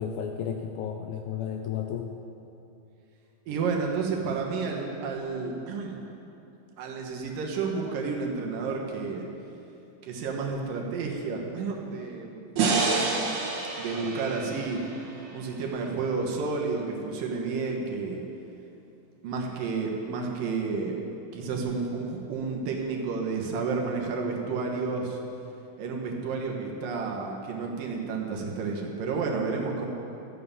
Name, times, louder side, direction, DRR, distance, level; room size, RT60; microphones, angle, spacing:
voice 1, 0.0-2.1, left 8 dB, 80° left, 4 dB, 1.9 m, -33 dB
voice 2, 3.5-6.0 6.8-9.3 10.0-12.4 13.8-14.8 15.3-18.2 19.2-21.0 21.3-25.2 25.8-29.9, right 4 dB, 75° right, 0 dB, 2.9 m, -31 dB
sound 1, 12.6-15.8, right 4 dB, 55° right, 2.4 m, -28 dB
13.0 x 9.1 x 6.8 m, 2.8 s
omnidirectional pair, 4.1 m